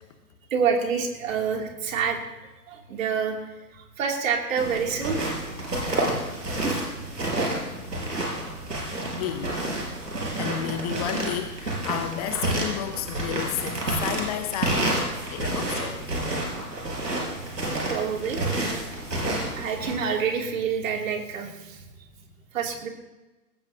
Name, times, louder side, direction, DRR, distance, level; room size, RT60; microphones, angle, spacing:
voice 1, 0.5-2.2 2.7-3.5 3.8-5.2 17.9-18.4 19.6-21.8 22.5-22.9, right 6 dB, 55° right, 1 dB, 2.9 m, -27 dB
sound 1, 4.6-19.9, right 1 dB, 85° right, 5.5 m, -29 dB
voice 2, 9.2-9.6 10.1-15.0 15.3-16.1 19.2-19.3 21.4-21.5 21.8-21.9, left 10 dB, 25° left, 8 dB, 0.7 m, -32 dB
19.5 x 15.5 x 2.8 m, 1.1 s
figure-of-eight pair, 125°, 48 cm